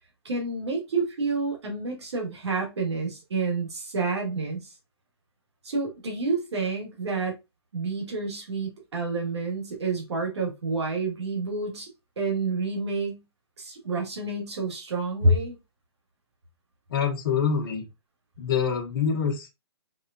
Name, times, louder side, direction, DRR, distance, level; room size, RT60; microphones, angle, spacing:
voice 1, 0.3-4.6 5.6-7.3 7.7-11.9 12.2-13.2 13.6-15.6, right 3 dB, 85° right, 1.7 m, -28 dB
voice 2, 16.9-17.8 18.4-19.5, left 6 dB, 55° left, 0.9 m, -25 dB
4.7 x 2.2 x 2.5 m
hypercardioid pair, 160°, 14 cm